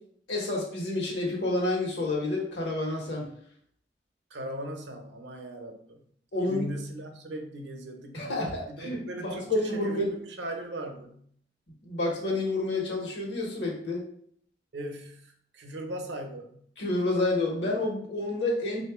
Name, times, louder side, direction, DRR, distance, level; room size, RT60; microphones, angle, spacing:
voice 1, 0.3-3.2 6.3-6.7 8.1-10.1 11.8-14.0 16.8-18.8, left 2 dB, 80° left, -1 dB, 1.2 m, -29 dB
voice 2, 4.3-6.0 6.4-11.3 14.7-16.6, right 1 dB, 80° right, 5 dB, 0.6 m, -39 dB
3.6 x 2.5 x 3.5 m, 0.63 s
head